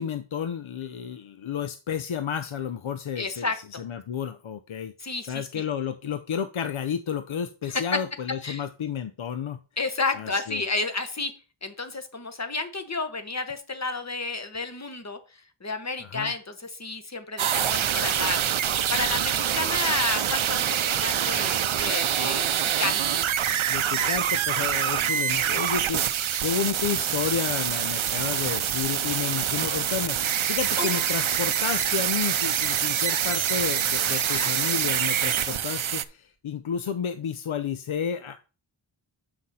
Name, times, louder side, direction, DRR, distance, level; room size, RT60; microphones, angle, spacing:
voice 1, 0.0-3.5 3.8-4.9 5.2-9.6 10.2-10.6 16.0-16.3 23.7-38.4, left 7 dB, 75° left, 10 dB, 0.7 m, -31 dB
voice 2, 3.2-3.6 5.0-5.6 7.7-7.8 8.4-8.6 9.8-11.3 11.6-18.4 18.9-22.5 22.8-23.2 23.8-24.1 28.3-28.6 34.0-34.5, left 3 dB, 35° left, 8 dB, 1.1 m, -31 dB
sound 1, 17.4-36.1, right 10 dB, 75° right, 0.6 m, -25 dB
Piano, 30.7-32.3, right 1 dB, 15° right, 1.4 m, -37 dB
7.8 x 5.8 x 4.1 m, 0.33 s
wide cardioid pair, 75°, 49 cm